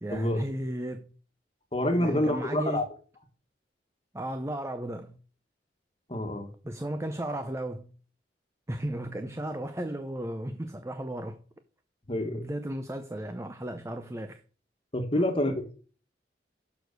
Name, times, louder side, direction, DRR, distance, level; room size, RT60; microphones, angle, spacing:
voice 1, 0.0-1.1 1.9-2.8 4.1-5.2 6.6-7.9 8.7-11.4 12.3-14.4 15.1-15.3, right 1 dB, 15° right, 0.5 m, -34 dB
voice 2, 1.7-2.8 6.1-6.5 12.1-12.4 14.9-15.7, left 1 dB, 30° left, 1.5 m, -27 dB
7.0 x 6.3 x 6.6 m
head